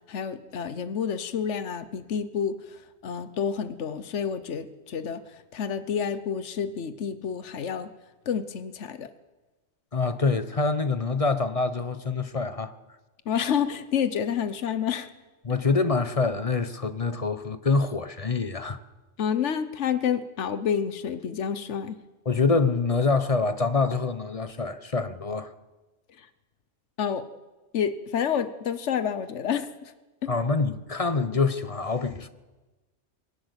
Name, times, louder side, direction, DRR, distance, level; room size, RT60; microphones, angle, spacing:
voice 1, 0.1-5.2 5.5-7.9 8.3-9.1 13.3-15.1 19.2-22.0 26.2-26.3 27.0-27.2 27.7-29.9 30.2-30.3, left 7 dB, 80° left, 1.3 m, -29 dB
voice 2, 9.9-12.7 15.4-18.8 22.2-25.5 30.3-32.3, left 4 dB, 30° left, 1.0 m, -25 dB
22.0 x 17.5 x 8.2 m
omnidirectional pair, 1.2 m